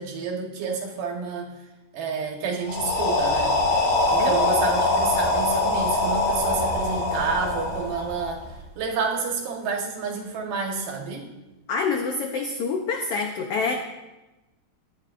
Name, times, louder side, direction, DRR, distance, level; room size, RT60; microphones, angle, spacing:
voice 1, 0.0-1.5 1.9-3.5 4.1-8.4 8.8-11.3, right 5 dB, 85° right, 1 dB, 3.1 m, -29 dB
sound 1, 2.6-8.6, left 2 dB, 65° left, 3.1 m, -23 dB
voice 2, 11.7-13.7, left 4 dB, 85° left, 3 dB, 1.3 m, -27 dB
17.5 x 9.3 x 2.5 m, 1.0 s
omnidirectional pair, 3.7 m